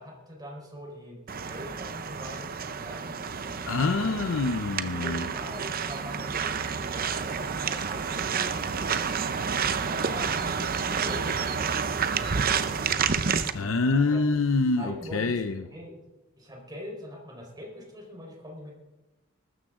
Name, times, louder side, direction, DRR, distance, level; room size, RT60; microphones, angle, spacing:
voice 1, 0.0-3.6 4.1-4.3 4.8-8.6 9.4-13.1 13.4-14.2 14.8-15.4 15.7-16.0 16.4-18.7, equal, 20° right, 4.2 m, -43 dB
sound 1, 1.3-13.5, right 6 dB, 45° right, 0.7 m, -29 dB
voice 2, 3.7-5.3 13.5-15.6, left 3 dB, 80° left, 0.7 m, -26 dB
20.5 x 13.0 x 3.7 m
head